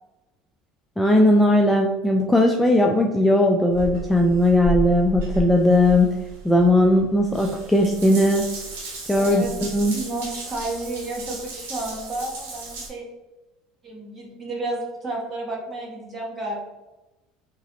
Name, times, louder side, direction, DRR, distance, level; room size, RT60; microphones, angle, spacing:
voice 1, 1.0-6.1 6.4-8.5 9.1-9.4 9.7-10.0, left 1 dB, 5° left, 1 dB, 0.3 m, -18 dB
Water tap faucet / Bathtub (filling or washing) / Drip, 3.7-12.9, right 2 dB, 85° right, 0.8 m, -34 dB
voice 2, 9.2-9.5 9.9-13.0 13.8-16.6, right 2 dB, 30° right, -3 dB, 1.2 m, -31 dB
2.9 x 2.5 x 2.7 m, 1.0 s
supercardioid pair, 100°, 0 cm